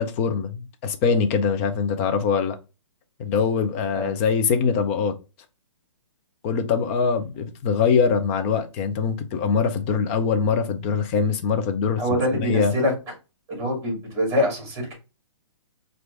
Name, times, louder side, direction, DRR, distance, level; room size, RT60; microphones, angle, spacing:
voice 1, 0.0-2.6 3.2-5.1 6.4-12.0 12.5-12.7, left 6 dB, 25° left, 0.5 m, -23 dB
voice 2, 12.0-12.9 13.5-14.9, equal, 20° right, 2.5 m, -24 dB
4.7 x 2.6 x 3.3 m
hypercardioid pair, 155°, 16 cm